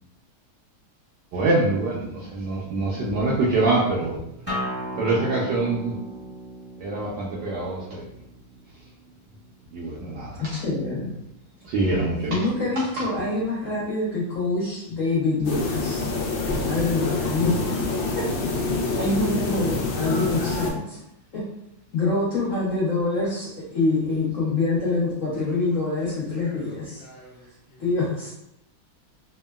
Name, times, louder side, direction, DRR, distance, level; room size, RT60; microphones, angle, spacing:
voice 1, 1.3-4.2 4.9-5.9 6.8-8.0 9.7-10.4 11.6-12.4, right 2 dB, 75° right, -5 dB, 1.0 m, -24 dB
Acoustic guitar, 4.5-9.7, equal, 15° right, 0.6 m, -36 dB
voice 2, 10.3-11.1 12.3-16.1 16.6-17.8 18.2-18.3 18.6-21.0 21.3-21.4 21.9-27.0 27.8-28.3, left 3 dB, 90° left, -8 dB, 0.7 m, -25 dB
sound 1, 15.4-20.7, left 3 dB, 75° left, 1.2 m, -26 dB
voice 3, 26.4-27.8, left 1 dB, 55° left, -6 dB, 1.6 m, -48 dB
3.6 x 2.1 x 2.2 m, 0.77 s
omnidirectional pair, 2.3 m